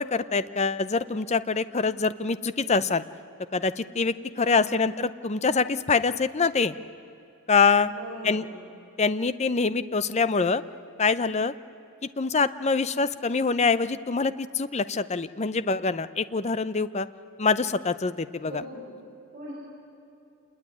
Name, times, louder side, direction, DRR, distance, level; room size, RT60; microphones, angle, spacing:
voice 1, 0.0-3.0 3.5-6.7 7.5-7.9 8.2-8.4 9.0-10.6 11.0-11.5 12.2-17.1 17.4-18.6, left 4 dB, 30° left, 14 dB, 0.6 m, -25 dB
voice 2, 4.3-4.7 7.8-8.6 18.4-18.9 19.3-19.5, equal, 35° right, -7 dB, 6.5 m, -40 dB
27.5 x 21.0 x 9.7 m, 2.7 s
head